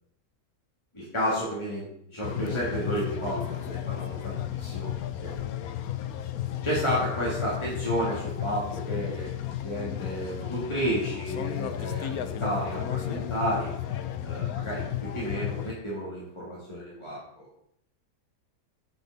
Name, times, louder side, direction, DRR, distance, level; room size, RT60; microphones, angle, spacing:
voice 1, 0.9-4.9 5.2-5.3 6.6-9.3 9.6-13.7 14.2-17.5, equal, 20° left, -7 dB, 2.8 m, -31 dB
sound 1, 2.2-15.7, left 11 dB, 75° left, 1.2 m, -33 dB
8.7 x 8.3 x 4.1 m, 0.72 s
omnidirectional pair, 1.6 m